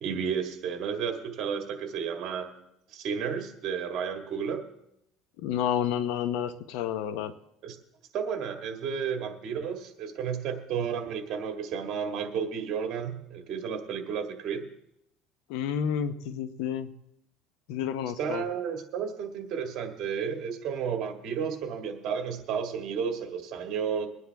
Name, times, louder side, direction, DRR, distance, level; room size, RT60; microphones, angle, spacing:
voice 1, 0.0-2.5 2.9-4.6 7.6-7.8 8.1-14.6 18.2-24.1, right 7 dB, 50° right, 5 dB, 1.9 m, -32 dB
voice 2, 5.4-7.3 15.5-16.9 17.7-18.4, left 9 dB, 80° left, 12 dB, 0.9 m, -30 dB
23.5 x 9.6 x 3.5 m, 0.81 s
cardioid pair, 135°, 0 cm